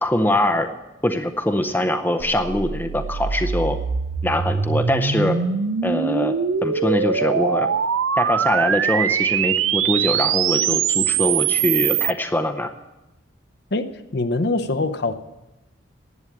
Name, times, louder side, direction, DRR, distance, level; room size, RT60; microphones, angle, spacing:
voice 1, 0.0-0.7 1.0-3.8 4.2-5.4 5.8-6.3 6.6-7.7 8.2-12.7, left 1 dB, 10° left, 6 dB, 0.6 m, -22 dB
sound 1, 2.2-12.1, right 7 dB, 80° right, 0.5 m, -22 dB
voice 2, 13.7-15.1, left 2 dB, 55° left, 10 dB, 0.7 m, -23 dB
11.0 x 8.8 x 8.6 m, 1.0 s
head